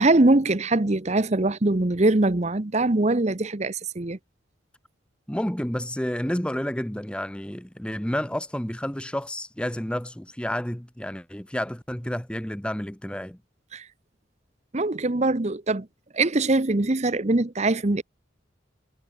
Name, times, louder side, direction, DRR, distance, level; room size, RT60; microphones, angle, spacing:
voice 1, 0.0-4.2 13.7-13.8 14.7-15.9 16.1-18.0, right 2 dB, 35° right, 0.9 m, -22 dB
voice 2, 5.3-13.4, equal, 5° left, 0.9 m, -30 dB
head